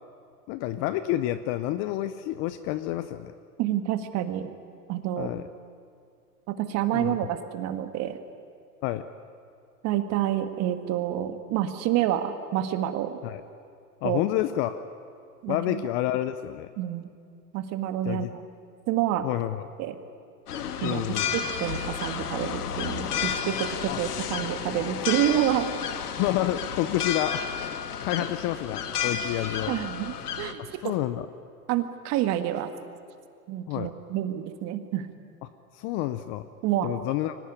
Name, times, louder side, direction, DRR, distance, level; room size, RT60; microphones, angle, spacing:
voice 1, 0.5-3.3 5.2-5.5 6.9-7.2 8.8-9.1 13.2-13.4 14.0-14.8 15.5-16.7 18.0-18.3 19.2-19.6 20.8-21.4 23.9-24.0 26.2-29.7 30.6-31.3 33.7-33.9 35.4-36.4 36.8-37.4, left 13 dB, 25° left, 12 dB, 0.6 m, -29 dB
voice 2, 3.6-4.5 4.9-5.3 6.5-8.2 9.8-13.2 14.0-14.2 15.4-15.9 16.8-17.1 17.5-18.4 18.9-19.2 19.8-20.0 20.8-21.0 21.3-25.7 29.7-30.9 31.7-32.7 33.5-35.1 36.6-36.9, right 12 dB, 35° right, 9 dB, 1.8 m, -28 dB
sound 1, 20.5-30.5, left 7 dB, 70° left, 1.8 m, -32 dB
24.0 x 18.5 x 9.8 m, 2.3 s
hypercardioid pair, 125°, 47 cm